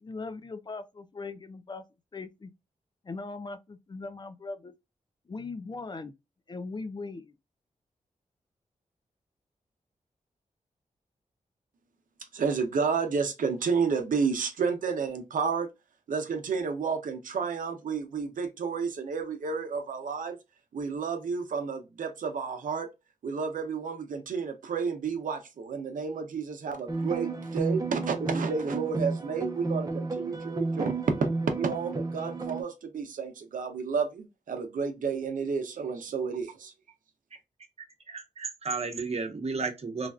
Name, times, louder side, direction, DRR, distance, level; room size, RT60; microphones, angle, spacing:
voice 1, 0.0-1.8 2.1-2.5 3.0-4.7 5.3-6.1 6.5-7.4, left 3 dB, 35° left, 0.4 m, -39 dB
voice 2, 12.3-15.7 16.1-20.4 20.7-22.9 23.2-30.9 31.6-36.7, right 5 dB, 80° right, 0.7 m, -31 dB
sound 1, 26.9-32.6, right 3 dB, 25° right, 0.6 m, -32 dB
voice 3, 38.1-40.1, right 4 dB, 50° right, 0.9 m, -33 dB
3.3 x 2.3 x 2.3 m
cardioid pair, 75°, 13 cm